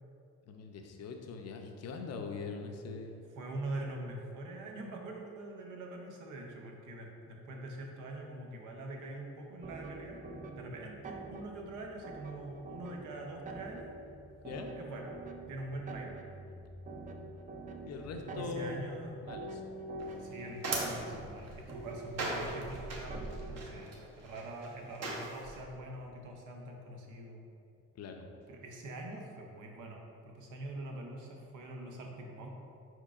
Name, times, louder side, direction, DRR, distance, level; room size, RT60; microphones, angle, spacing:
voice 1, 0.4-3.3 14.4-14.7 17.9-19.6 27.9-28.3, left 4 dB, 55° left, 3 dB, 0.6 m, -42 dB
voice 2, 3.4-10.2 10.5-13.9 14.8-15.1 15.5-16.2 18.4-19.1 20.2-23.2 23.5-27.5 28.5-32.5, right 2 dB, 85° right, 1 dB, 0.7 m, -44 dB
sound 1, 9.6-23.8, right 2 dB, 25° right, 0.4 m, -46 dB
sound 2, 20.0-25.6, right 2 dB, 55° right, 0.9 m, -40 dB
4.6 x 4.5 x 2.4 m, 2.5 s
cardioid pair, 90°, 30 cm